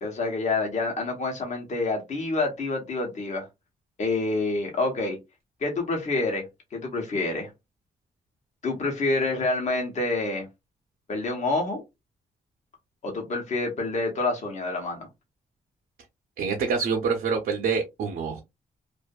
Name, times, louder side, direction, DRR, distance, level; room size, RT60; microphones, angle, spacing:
voice 1, 0.0-3.5 4.0-5.2 5.6-6.5 6.7-7.5 8.6-10.5 11.1-11.8 13.0-15.1, left 3 dB, 50° left, 0.9 m, -27 dB
voice 2, 16.4-18.4, right 5 dB, 90° right, 0.6 m, -26 dB
2.6 x 2.4 x 2.2 m
cardioid pair, 115°, 15 cm